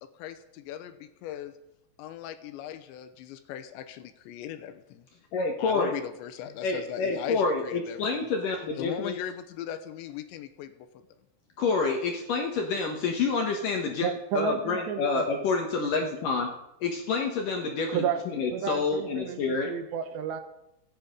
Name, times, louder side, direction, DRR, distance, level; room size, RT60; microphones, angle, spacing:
voice 1, 0.0-1.6 2.0-5.1 5.6-8.2 8.8-11.1, left 10 dB, 80° left, 9 dB, 3.1 m, -39 dB
voice 2, 5.3-5.9 6.6-9.1 11.6-16.5 16.8-19.7, left 4 dB, 65° left, 3 dB, 2.2 m, -28 dB
voice 3, 14.0-15.3 17.9-18.2 18.5-20.4, right 8 dB, 75° right, 8 dB, 3.2 m, -31 dB
26.0 x 9.7 x 5.2 m, 0.87 s
omnidirectional pair, 5.3 m